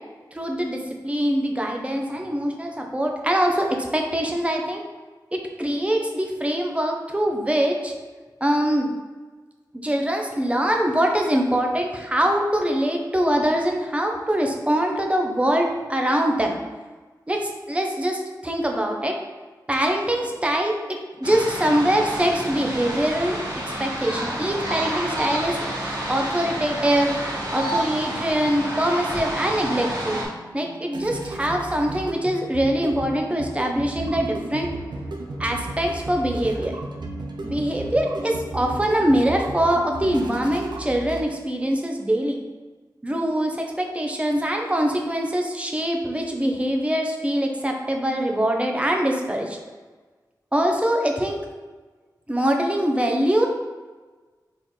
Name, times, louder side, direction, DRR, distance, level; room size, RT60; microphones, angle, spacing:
voice 1, 0.3-4.8 5.3-7.9 8.4-8.9 9.7-16.6 17.3-19.2 19.7-23.4 23.8-25.6 26.1-27.1 27.5-30.2 30.5-34.7 35.4-36.7 37.4-42.4 43.0-49.6 50.5-51.4 52.3-53.5, right 1 dB, 15° right, 2 dB, 0.6 m, -23 dB
sound 1, 21.2-30.2, right 1 dB, 60° right, 1.4 m, -29 dB
sound 2, 29.3-41.6, right 2 dB, 85° right, 0.6 m, -35 dB
4.4 x 3.6 x 3.1 m, 1.3 s
wide cardioid pair, 95°, 8 cm